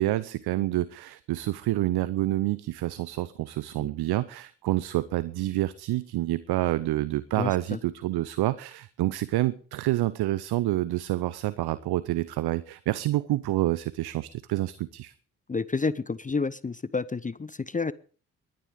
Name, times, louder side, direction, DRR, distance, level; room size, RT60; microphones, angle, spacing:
voice 1, 0.0-15.1, right 16 dB, 60° right, 17 dB, 0.8 m, -28 dB
voice 2, 7.4-7.8 15.5-17.9, left 4 dB, 20° left, 19 dB, 0.7 m, -30 dB
20.0 x 10.5 x 5.2 m, 0.41 s
hypercardioid pair, 40°, 42 cm